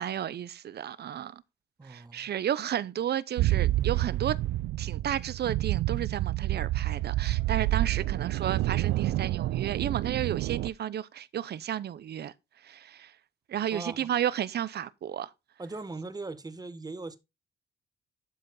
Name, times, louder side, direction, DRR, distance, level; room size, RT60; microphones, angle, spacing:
voice 1, 0.0-1.4 1.8-4.4 4.8-13.2 13.5-15.3, right 10 dB, 55° right, 0.7 m, -32 dB
voice 2, 1.8-2.3 13.7-14.1 15.6-17.2, right 3 dB, 20° right, 1.5 m, -39 dB
sound 1, 3.4-10.7, right 16 dB, 80° right, 0.4 m, -28 dB
12.0 x 5.1 x 4.0 m
cardioid pair, 90°, 20 cm